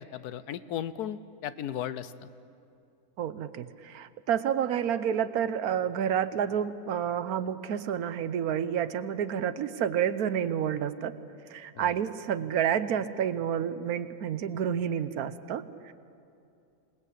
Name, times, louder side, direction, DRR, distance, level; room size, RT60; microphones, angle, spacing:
voice 1, 0.0-2.3 11.7-11.9, left 10 dB, 85° left, 14 dB, 1.3 m, -36 dB
voice 2, 3.2-11.1 11.5-15.9, right 8 dB, 75° right, 13 dB, 1.3 m, -29 dB
26.5 x 19.5 x 8.3 m, 2.5 s
omnidirectional pair, 1.6 m